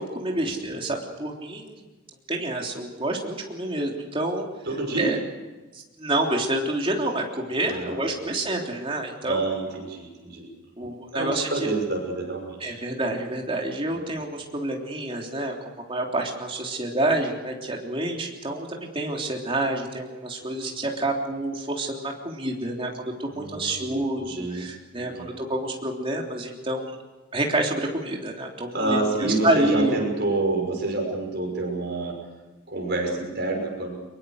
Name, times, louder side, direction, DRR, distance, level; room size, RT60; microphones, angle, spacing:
voice 1, 0.0-1.8 2.3-4.4 5.0-5.2 5.7-9.5 10.8-11.7 12.6-25.1 25.4-26.9 27.3-29.9 31.0-31.1, right 1 dB, 25° right, 0 dB, 3.4 m, -28 dB
voice 2, 4.6-5.2 7.6-8.3 9.2-10.5 11.1-12.8 13.9-14.0 20.4-20.7 23.3-24.7 24.9-25.3 28.7-32.2 32.7-33.9, right 2 dB, 50° right, 1 dB, 6.2 m, -28 dB
24.0 x 22.5 x 6.6 m, 1.2 s
head